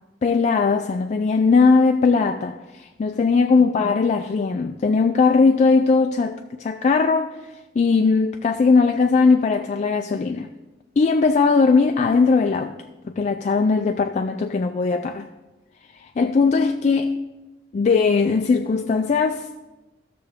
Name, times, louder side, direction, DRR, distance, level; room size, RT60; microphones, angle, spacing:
voice 1, 0.2-7.4 7.8-10.5 11.0-12.8 13.0-15.3 16.2-17.1 17.7-19.5, left 4 dB, 40° left, 0.3 m, -19 dB
14.5 x 6.6 x 3.6 m
head